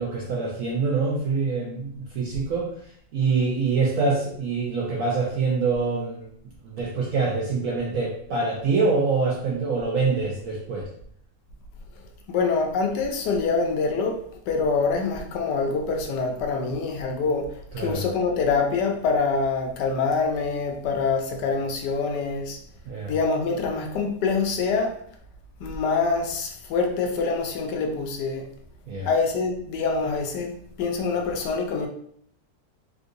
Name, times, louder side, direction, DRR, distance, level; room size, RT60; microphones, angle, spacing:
voice 1, 0.0-2.7 3.1-6.3 6.6-10.9 16.7-16.8 17.7-18.0 22.9-23.1 28.9-29.1, right 4 dB, 70° right, -3 dB, 0.8 m, -25 dB
voice 2, 12.3-14.2 14.5-17.5 17.8-22.6 23.1-24.9 25.6-28.5 29.0-31.9, left 4 dB, 75° left, 2 dB, 1.2 m, -25 dB
3.7 x 2.6 x 2.5 m, 0.64 s
omnidirectional pair, 1.9 m